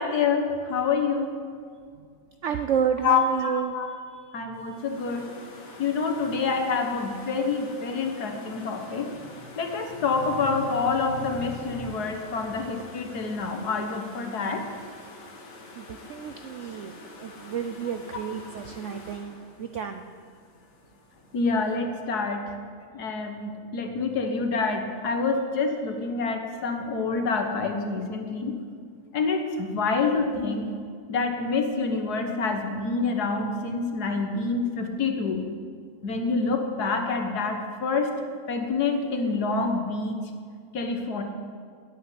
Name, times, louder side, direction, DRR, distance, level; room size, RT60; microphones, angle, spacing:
voice 1, 0.0-1.3 3.0-4.0 4.3-5.2 5.8-9.1 9.6-14.6 21.3-22.4 22.9-28.6 29.1-30.7 31.1-35.5 36.0-38.1 38.5-40.2 40.7-41.2, left 4 dB, 65° left, 5 dB, 1.7 m, -27 dB
voice 2, 2.4-3.7 4.1-4.4 15.8-16.9 17.2-20.1, right 7 dB, 70° right, 8 dB, 0.7 m, -30 dB
sound 1, 4.5-21.8, left 2 dB, 85° left, 2.1 m, -47 dB
9.3 x 8.2 x 9.6 m, 2.1 s
omnidirectional pair, 1.8 m